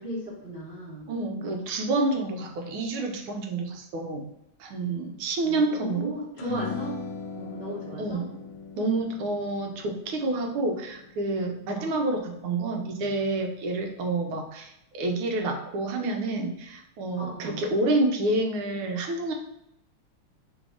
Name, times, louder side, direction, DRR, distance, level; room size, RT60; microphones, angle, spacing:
voice 1, 0.0-1.1 5.4-7.0 7.3-8.3 11.7-11.9 17.2-17.6, right 1 dB, 35° right, -8 dB, 1.0 m, -36 dB
voice 2, 1.1-4.3 4.6-6.1 8.0-8.3 8.8-19.3, right 2 dB, 85° right, 3 dB, 1.6 m, -28 dB
sound 1, 6.4-12.9, left 6 dB, 75° left, 1.3 m, -40 dB
3.8 x 2.7 x 4.7 m, 0.80 s
omnidirectional pair, 2.3 m